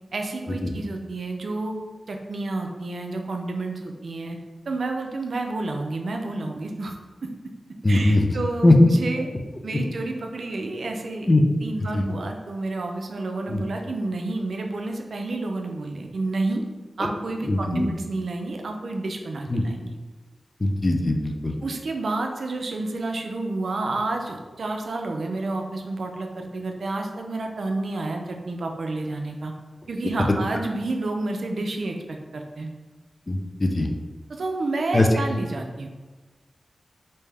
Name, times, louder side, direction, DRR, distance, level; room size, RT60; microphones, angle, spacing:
voice 1, 0.1-1.7 2.1-4.4 4.7-7.0 7.2-7.3 7.9-9.3 9.6-11.3 11.6-16.6 17.0-19.9 21.6-29.5 29.9-32.7 34.4-35.9, right 2 dB, 80° right, 3 dB, 0.4 m, -30 dB
voice 2, 7.8-8.2 8.6-8.7 11.3-11.4 11.9-12.0 13.5-13.6 17.5-17.9 19.5-19.6 20.6-21.5 33.3-33.9 34.9-35.1, left 2 dB, 35° left, 3 dB, 0.5 m, -20 dB
3.3 x 2.7 x 3.4 m, 1.3 s
cardioid pair, 60°, 0 cm